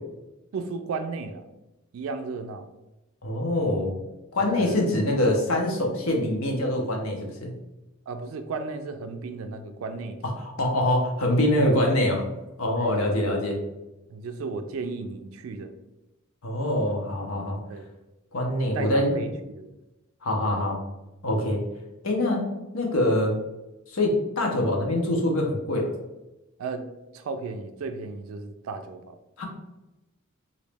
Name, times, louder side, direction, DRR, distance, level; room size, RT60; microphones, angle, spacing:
voice 1, 0.5-1.4 1.9-2.7 4.4-4.8 8.1-10.2 11.6-11.9 12.8-13.4 14.1-15.8 17.7-17.9 18.7-19.7 20.4-20.7 26.6-26.9 27.1-29.2, right 4 dB, 75° right, 7 dB, 0.3 m, -34 dB
voice 2, 3.2-3.9 4.3-7.5 10.2-12.2 12.6-13.6 16.4-17.6 18.3-19.2 20.2-20.8 21.2-21.6 22.0-22.5 22.7-23.4 23.9-25.9 29.4-29.5, left 1 dB, 80° left, 1 dB, 0.8 m, -24 dB
3.0 x 2.6 x 3.3 m, 0.97 s
head